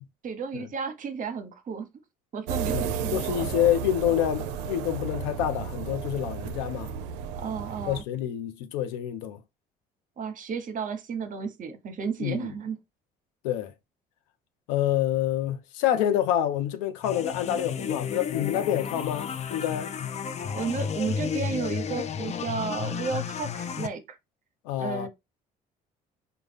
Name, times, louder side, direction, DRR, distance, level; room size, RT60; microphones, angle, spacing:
voice 1, 0.2-1.9 2.3-3.5 7.4-8.0 10.2-12.8 20.5-24.2 24.8-25.1, right 5 dB, 50° right, 0.8 m, -33 dB
sound 1, 2.5-8.0, right 7 dB, 80° right, 0.5 m, -33 dB
voice 2, 2.7-6.9 7.9-9.4 12.2-12.5 13.4-13.7 14.7-19.9 24.6-25.1, left 11 dB, 85° left, 0.6 m, -27 dB
sound 2, 17.0-23.9, left 7 dB, 40° left, 0.5 m, -32 dB
3.9 x 2.3 x 3.3 m
supercardioid pair, 70°, 18 cm